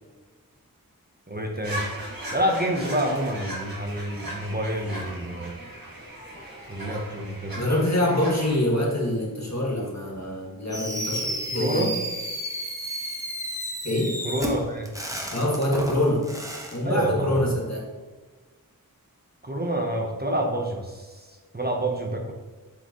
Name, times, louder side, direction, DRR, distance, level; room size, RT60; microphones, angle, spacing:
voice 1, 1.3-1.9 2.3-5.6 6.7-7.6 11.5-12.0 14.2-14.9 16.8-17.4 19.4-21.3 21.5-22.3, right 1 dB, 25° right, 2 dB, 0.9 m, -28 dB
sound 1, 1.6-8.6, right 1 dB, 75° right, 1.9 m, -38 dB
voice 2, 7.5-11.9 13.8-14.2 15.3-16.3 16.7-17.9, left 1 dB, 50° left, -3 dB, 2.0 m, -25 dB
Fireworks, 10.7-16.8, equal, 10° right, 1.3 m, -32 dB
8.0 x 5.0 x 3.0 m, 1.3 s
wide cardioid pair, 40°, 36 cm